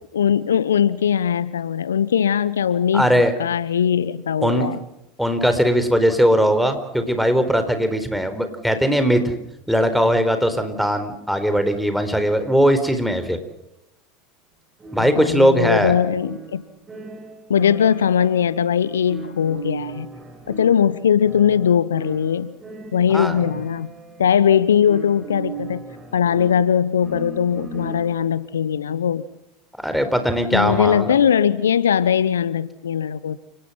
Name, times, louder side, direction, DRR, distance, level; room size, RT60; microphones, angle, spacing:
voice 1, 0.1-3.1 3.4-4.8 15.0-16.6 17.5-20.1 20.5-22.5 22.9-23.9 24.2-25.8 26.1-29.2 30.5-33.4, left 8 dB, 80° left, 18 dB, 0.9 m, -20 dB
voice 2, 2.9-3.3 4.4-4.7 5.2-9.2 9.7-13.4 14.9-15.9 23.1-23.4 29.8-31.1, equal, ahead, 8 dB, 4.3 m, -19 dB
sound 1, 14.8-28.4, right 5 dB, 20° right, 7.4 m, -38 dB
30.0 x 19.0 x 5.8 m, 0.85 s
figure-of-eight pair, 80°, 0 cm